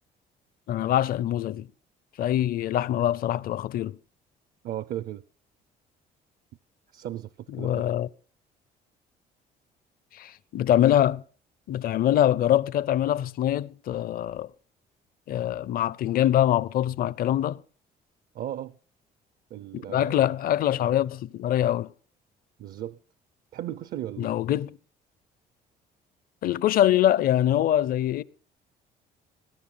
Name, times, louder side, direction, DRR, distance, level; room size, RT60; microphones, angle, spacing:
voice 1, 0.7-1.7 2.2-4.0 7.5-8.1 10.1-11.2 11.7-14.5 15.3-17.6 19.9-21.9 24.2-24.8 26.4-28.2, left 11 dB, 60° left, 0.7 m, -24 dB
voice 2, 4.6-5.2 6.9-7.9 18.3-18.8 19.5-20.3 22.6-23.0 23.5-24.3, right 12 dB, 60° right, 0.6 m, -36 dB
20.0 x 10.0 x 5.7 m
cardioid pair, 110°, 17 cm